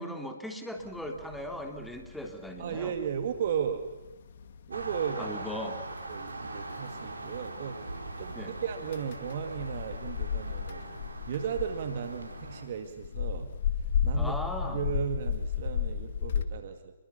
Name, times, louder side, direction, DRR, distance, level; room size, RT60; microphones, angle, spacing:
voice 1, 0.0-2.9 5.2-5.8 8.3-8.5 14.1-14.8, equal, 5° left, 3 dB, 3.3 m, -38 dB
sound 1, 0.8-16.4, left 7 dB, 55° left, 2.4 m, -35 dB
voice 2, 2.6-3.9 4.7-5.3 6.1-7.9 8.2-10.8 11.3-13.5 14.0-16.9, right 8 dB, 50° right, 8 dB, 2.2 m, -35 dB
sound 2, 4.7-12.6, right 2 dB, 80° right, 4.7 m, -41 dB
28.0 x 22.5 x 7.0 m, 1.1 s
figure-of-eight pair, 130°, 0 cm